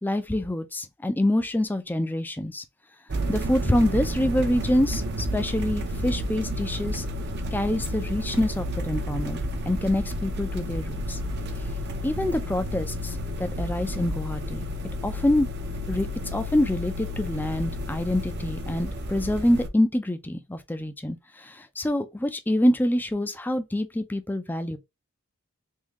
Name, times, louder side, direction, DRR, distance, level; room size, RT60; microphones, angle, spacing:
voice 1, 0.0-2.6 3.3-7.0 7.5-11.2 12.0-14.7 15.0-15.5 15.9-24.8, left 1 dB, 10° left, 0.4 m, -26 dB
sound 1, 3.1-19.7, equal, 50° right, 0.7 m, -31 dB
3.6 x 2.6 x 3.0 m
head